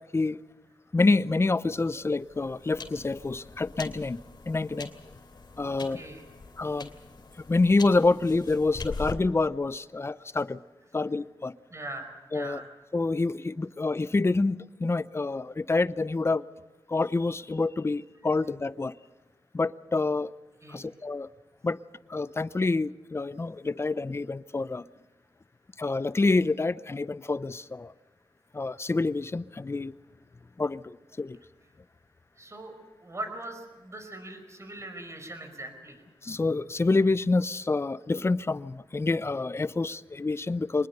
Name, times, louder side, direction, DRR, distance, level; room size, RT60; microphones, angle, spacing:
voice 1, 0.9-4.2 4.5-4.9 5.6-6.0 6.6-6.9 7.5-10.6 10.9-11.5 12.3-12.6 12.9-16.5 16.9-18.9 19.5-20.3 20.7-21.3 21.6-21.8 22.1-24.8 25.8-27.9 28.5-29.9 30.6-31.4 36.2-40.9, left 3 dB, 30° left, 17 dB, 0.6 m, -27 dB
sound 1, 1.8-9.1, left 4 dB, 55° left, 2.8 m, -43 dB
voice 2, 5.9-6.2 11.7-12.6 20.6-20.9 32.4-32.7 33.0-36.0, right 1 dB, 35° right, 6 dB, 5.1 m, -40 dB
24.5 x 20.0 x 6.7 m, 1.2 s
wide cardioid pair, 85°, 9 cm